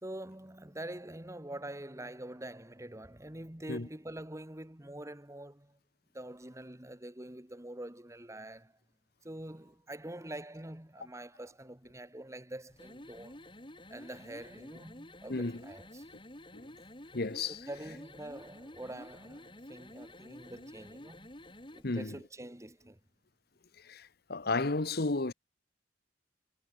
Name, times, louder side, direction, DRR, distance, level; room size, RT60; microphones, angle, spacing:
voice 1, 0.0-5.8 6.1-8.7 9.2-13.4 13.9-16.0 17.7-21.3 21.7-23.0, right 1 dB, 15° right, 1.7 m, -45 dB
sound 1, 12.7-21.9, left 1 dB, 25° left, 7.5 m, -51 dB
voice 2, 17.1-17.6 21.8-22.1 23.9-24.0 24.3-25.3, left 3 dB, 55° left, 1.2 m, -32 dB
head